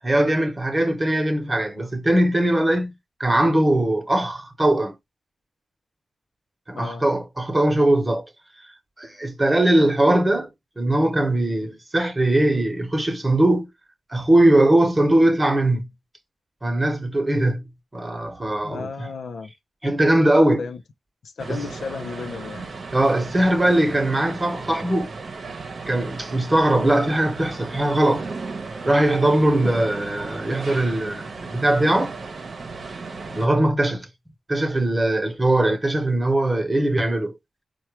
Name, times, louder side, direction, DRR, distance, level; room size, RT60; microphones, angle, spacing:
voice 1, 0.0-2.9 3.2-4.9 6.7-8.2 9.0-10.5 10.8-13.7 14.1-15.9 16.6-19.1 19.8-20.6 21.5-21.6 22.9-25.1 25.9-28.3 28.8-32.1 33.3-34.1 34.5-37.4, right 1 dB, 25° right, 1.0 m, -20 dB
voice 2, 18.6-19.5 20.6-20.8 21.2-22.7, left 5 dB, 85° left, 0.6 m, -34 dB
sound 1, 21.4-33.5, right 4 dB, 60° right, 0.8 m, -35 dB
4.3 x 2.3 x 4.6 m
cardioid pair, 65°, 0 cm